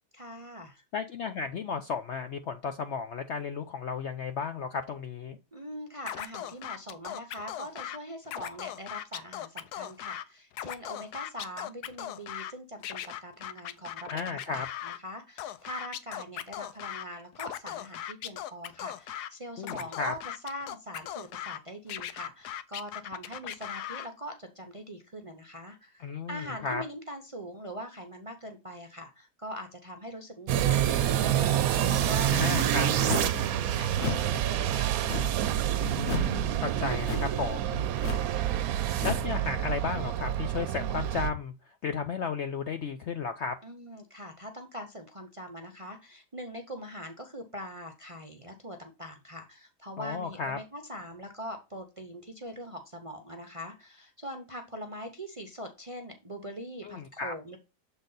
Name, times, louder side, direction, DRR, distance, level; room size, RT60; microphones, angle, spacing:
voice 1, 0.1-0.8 5.5-14.2 14.5-20.2 20.4-32.5 32.8-35.0 43.6-57.6, equal, 35° right, 0.6 m, -42 dB
voice 2, 0.9-5.4 14.1-14.7 19.6-20.1 26.0-26.8 32.3-32.9 35.8-37.9 39.0-41.5 41.8-43.6 50.0-50.6 56.8-57.3, left 5 dB, 65° left, 0.7 m, -34 dB
Scratching (performance technique), 6.1-8.0 8.3-10.2 10.5-12.5 12.8-15.0 15.4-17.0 17.3-19.3 19.6-21.6 21.9-24.1, left 11 dB, 85° left, 1.2 m, -38 dB
sound 1, 30.5-41.3, right 11 dB, 70° right, 1.0 m, -27 dB
sound 2, 33.0-33.4 34.0-34.3 35.0-35.5 36.0-36.4 37.0-37.4 38.0-38.3 39.0-39.3, left 7 dB, 50° left, 1.1 m, -34 dB
7.1 x 3.9 x 3.9 m
omnidirectional pair, 1.7 m